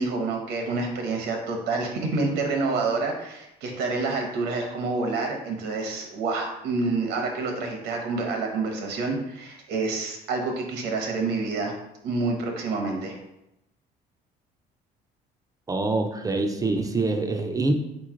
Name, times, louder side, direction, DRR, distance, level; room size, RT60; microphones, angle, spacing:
voice 1, 0.0-11.7 12.0-13.2, right 3 dB, 90° right, 2 dB, 0.9 m, -28 dB
voice 2, 15.7-17.7, right 2 dB, 20° right, 5 dB, 0.4 m, -25 dB
4.1 x 3.1 x 3.7 m, 0.85 s
cardioid pair, 110°, 17 cm